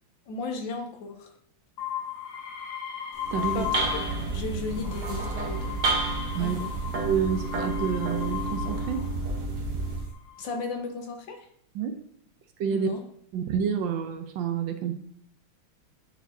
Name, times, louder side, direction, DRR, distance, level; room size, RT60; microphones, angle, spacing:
voice 1, 0.3-1.3 3.5-3.7 4.3-5.8 6.4-6.6 10.4-11.5 12.7-13.0, left 4 dB, 70° left, 5 dB, 1.5 m, -34 dB
sound 1, 1.8-4.3 4.7-9.2 10.0-10.5, left 10 dB, 85° left, 1.7 m, -36 dB
sound 2, 3.1-10.1, right 3 dB, 55° right, 1.6 m, -30 dB
voice 2, 3.3-3.7 6.3-6.6 7.0-9.0 11.7-11.9 12.6-12.9 13.3-14.9, right 8 dB, 75° right, 7 dB, 1.3 m, -28 dB
9.1 x 4.5 x 2.7 m, 0.65 s
omnidirectional pair, 2.3 m